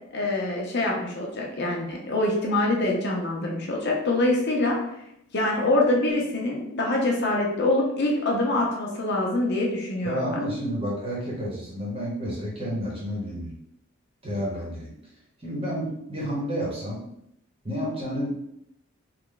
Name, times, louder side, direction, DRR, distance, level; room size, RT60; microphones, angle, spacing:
voice 1, 0.1-4.8 5.3-10.4, left 2 dB, 50° left, -1 dB, 0.6 m, -25 dB
voice 2, 10.0-13.5 14.2-14.9 15.4-17.0 17.6-18.5, equal, 25° right, -4 dB, 1.0 m, -30 dB
3.3 x 2.3 x 3.8 m, 0.77 s
head